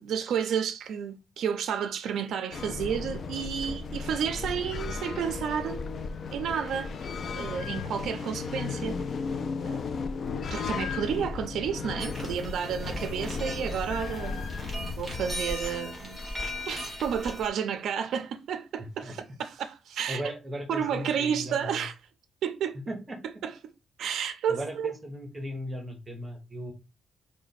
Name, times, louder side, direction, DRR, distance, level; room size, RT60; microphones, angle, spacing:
voice 1, 0.0-5.8 6.3-9.0 9.7-9.8 10.5-14.4 15.0-16.2 16.7-20.2 20.7-22.0 22.4-22.8 23.4-23.6 24.0-24.9, right 8 dB, 80° right, 0.4 m, -31 dB
sound 1, 2.5-15.3, left 5 dB, 45° left, 0.3 m, -35 dB
sound 2, 12.0-17.5, left 1 dB, 5° left, 1.2 m, -38 dB
voice 2, 20.1-21.8 22.7-23.2 24.5-26.7, equal, 20° right, 0.8 m, -37 dB
3.9 x 2.1 x 4.0 m
wide cardioid pair, 165°, 0 cm